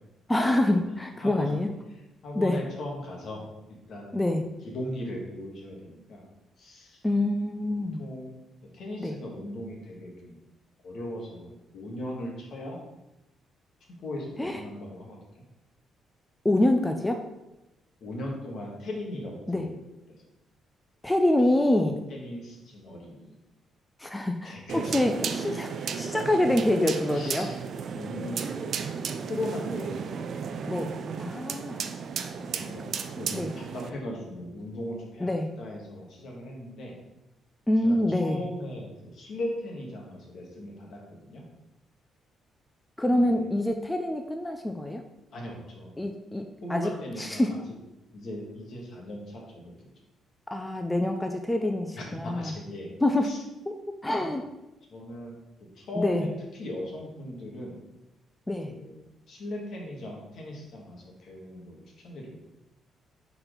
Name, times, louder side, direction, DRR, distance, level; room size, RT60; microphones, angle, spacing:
voice 1, 0.3-1.7 2.3-2.6 4.1-4.4 7.0-8.0 9.0-9.1 14.4-14.6 16.4-17.2 19.5-19.6 21.0-22.0 24.0-27.5 30.7-30.9 31.2-31.8 33.3-33.5 35.2-35.5 37.7-38.4 43.0-45.0 46.0-46.9 47.2-47.5 50.5-52.5 53.0-53.3 53.7-53.8 54.0-54.4 56.0-56.3 58.5-58.7, left 1 dB, 10° left, 4 dB, 0.5 m, -26 dB
voice 2, 1.2-1.5 1.9-3.5 3.9-4.4 4.6-6.2 6.6-7.0 8.0-8.3 8.7-10.4 10.8-12.8 14.0-15.4 18.0-19.8 20.1-20.2 22.1-23.3 24.4-25.0 25.4-25.6 27.1-27.6 27.9-28.4 28.8-30.1 32.4-35.3 35.6-36.9 37.8-41.4 43.1-43.5 45.3-46.0 46.6-47.6 48.1-49.9 52.0-53.0 53.2-53.4 54.9-55.3 55.8-57.8 58.6-59.0 59.3-62.4, left 1 dB, 65° left, -2 dB, 1.8 m, -38 dB
sound 1, 24.7-33.9, right 6 dB, 60° right, 0.5 m, -34 dB
4.4 x 4.1 x 5.1 m, 0.95 s
cardioid pair, 90°, 0 cm